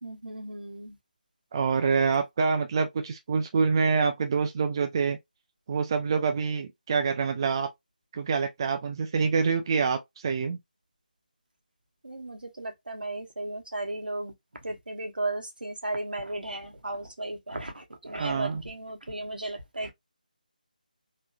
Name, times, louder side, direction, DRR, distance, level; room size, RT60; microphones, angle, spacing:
voice 1, 0.0-1.0 12.0-14.3 14.6-19.9, right 2 dB, 75° right, 1.0 m, -35 dB
voice 2, 1.5-5.2 5.7-7.7 8.1-10.6 18.2-18.6, right 5 dB, 30° right, 0.4 m, -26 dB
3.7 x 2.3 x 2.2 m
figure-of-eight pair, 155°, 5 cm